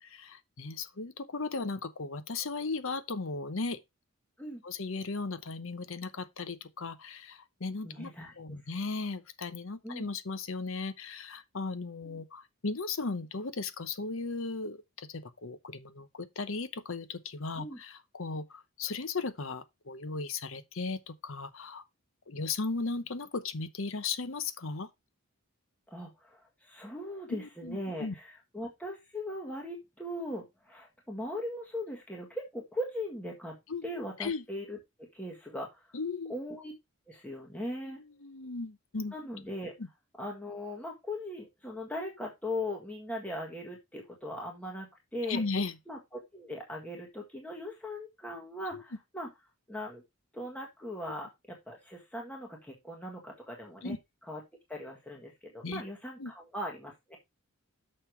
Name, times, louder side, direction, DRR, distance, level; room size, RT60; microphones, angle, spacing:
voice 1, 0.0-3.8 4.6-8.1 8.4-21.8 22.3-24.9 27.3-28.1 33.7-33.8 34.2-34.4 35.9-36.3 37.8-39.1 39.8-39.9 45.3-45.8 48.7-48.8 53.8-54.0 55.6-55.8 56.2-56.3, left 4 dB, 60° left, 0.9 m, -36 dB
voice 2, 7.8-8.6 9.8-10.1 12.0-12.2 17.6-17.8 25.9-35.9 36.3-36.7 37.1-38.0 39.1-39.7 40.2-45.4 45.9-49.3 49.7-50.0 50.3-54.0 54.2-54.4 54.7-57.2, left 1 dB, 5° left, 1.5 m, -39 dB
6.6 x 5.7 x 4.5 m
head